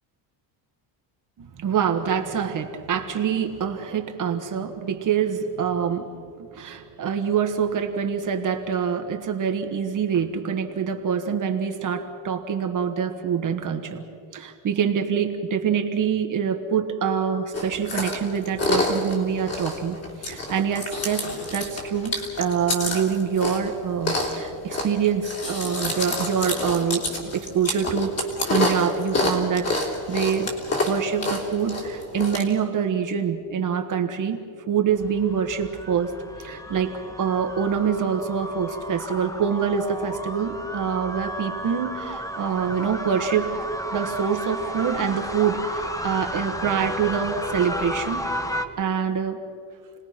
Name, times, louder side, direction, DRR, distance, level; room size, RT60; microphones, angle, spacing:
voice 1, 1.4-6.1 6.4-14.0 14.3-21.3 21.5-28.2 28.5-30.5 30.8-34.4 34.7-36.1 36.4-48.3 48.8-49.4, right 7 dB, 40° right, 5 dB, 1.4 m, -25 dB
Chewing mastication, 17.5-32.4, left 2 dB, 30° left, 3.4 m, -28 dB
sound 1, 34.9-48.7, equal, 5° left, 0.9 m, -33 dB
29.5 x 20.0 x 5.9 m, 2.4 s
cardioid pair, 165°, 47 cm